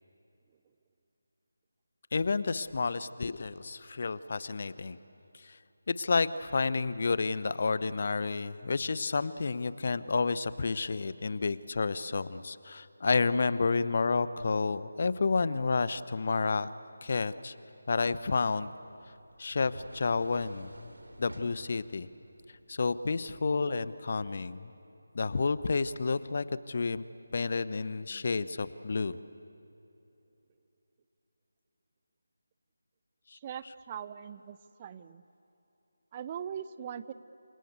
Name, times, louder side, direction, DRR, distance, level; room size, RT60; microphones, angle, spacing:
voice 1, 2.1-5.0 5.4-5.6 5.9-16.7 17.0-17.5 17.9-18.7 19.4-20.9 21.2-22.1 22.7-24.7 25.1-27.0 27.3-29.2 33.3-33.4, left 4 dB, 45° left, 15 dB, 0.9 m, -30 dB
sound 1, 18.7-23.6, right 1 dB, 75° right, 3.7 m, -52 dB
voice 2, 33.3-35.2 36.1-37.1, right 8 dB, 25° right, 14 dB, 0.7 m, -41 dB
29.0 x 25.5 x 8.2 m, 2.9 s
figure-of-eight pair, 155°, 0 cm